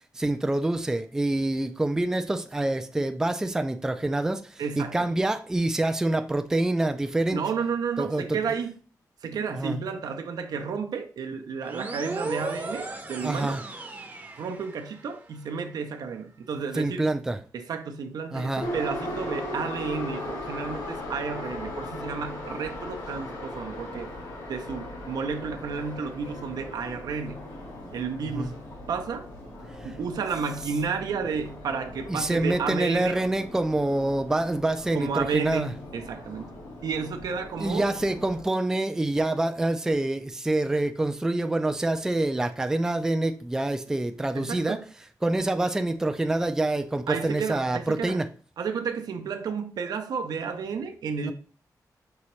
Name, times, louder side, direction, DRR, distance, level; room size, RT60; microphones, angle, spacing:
voice 1, 0.1-7.4 8.0-8.4 9.5-9.8 13.2-13.6 16.7-17.4 18.3-18.7 28.3-28.5 29.8-29.9 32.1-35.7 37.6-44.8 45.2-48.3 51.2-51.3, right 2 dB, 10° right, 0.3 m, -26 dB
voice 2, 4.6-5.1 7.3-8.8 9.2-13.6 14.4-17.1 17.5-24.1 24.5-27.5 27.9-29.3 29.8-33.2 34.9-36.5 36.8-37.9 44.3-44.8 47.1-48.2 48.6-51.3, right 5 dB, 80° right, 0.6 m, -32 dB
sound 1, 11.6-15.1, right 2 dB, 25° right, 0.7 m, -36 dB
Subway metro underground, 18.6-38.4, left 1 dB, 85° left, 1.5 m, -38 dB
5.5 x 2.9 x 3.0 m
wide cardioid pair, 125°, 7 cm